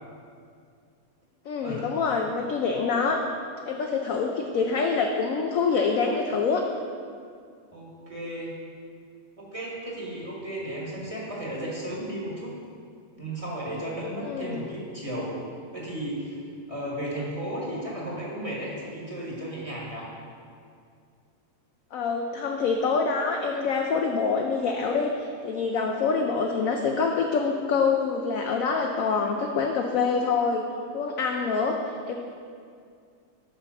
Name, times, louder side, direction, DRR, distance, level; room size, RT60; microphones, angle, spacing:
voice 1, 1.5-3.2 3.6-6.6 14.2-14.6 21.9-30.6 30.9-31.8 32.1-32.2, left 5 dB, 70° left, 2 dB, 0.8 m, -26 dB
voice 2, 7.7-8.6 9.4-12.5 13.1-15.3 15.7-16.4 16.7-20.1, right 1 dB, 20° right, -5 dB, 1.3 m, -34 dB
7.2 x 5.6 x 5.3 m, 2.2 s
omnidirectional pair, 1.9 m